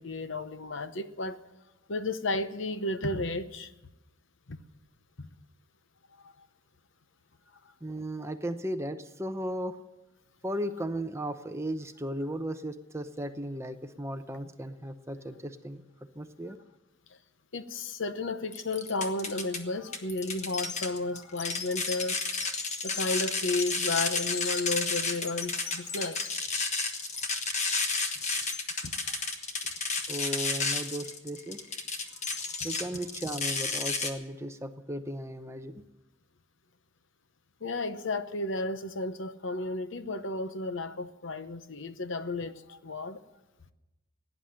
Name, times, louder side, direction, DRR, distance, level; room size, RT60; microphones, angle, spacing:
voice 1, 0.0-1.4 1.9-3.7 4.5-4.6 5.2-5.3 6.2-6.5 17.5-22.2 22.8-26.3 28.8-29.1 37.6-43.2, left 2 dB, 60° left, 0.9 m, -33 dB
voice 2, 7.8-9.8 10.4-15.8 16.2-16.6 30.1-31.7 32.6-35.8, right 1 dB, 15° right, 0.7 m, -36 dB
sound 1, 18.5-19.6 19.9-34.1, left 4 dB, 35° left, 1.4 m, -32 dB
17.0 x 10.0 x 7.7 m
head